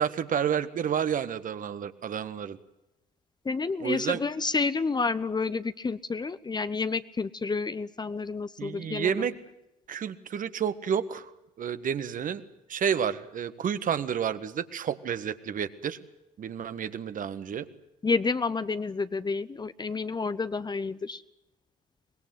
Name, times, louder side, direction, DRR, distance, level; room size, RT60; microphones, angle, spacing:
voice 1, 0.0-2.6 3.8-4.2 8.6-9.3 9.9-11.3 11.6-12.4 12.7-16.0 16.4-17.7, right 8 dB, 40° right, 12 dB, 1.6 m, -30 dB
voice 2, 3.4-9.3 18.0-21.2, left 4 dB, 20° left, 14 dB, 1.0 m, -30 dB
24.5 x 21.0 x 7.8 m, 0.94 s
hypercardioid pair, 60°, 20 cm